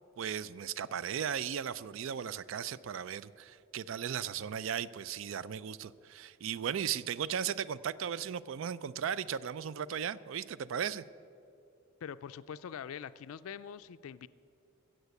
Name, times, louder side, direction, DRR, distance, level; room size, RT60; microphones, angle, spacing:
voice 1, 0.2-11.0, right 8 dB, 65° right, 18 dB, 0.4 m, -36 dB
voice 2, 12.0-14.3, left 7 dB, 80° left, 13 dB, 0.4 m, -44 dB
14.5 x 7.9 x 8.2 m, 2.6 s
head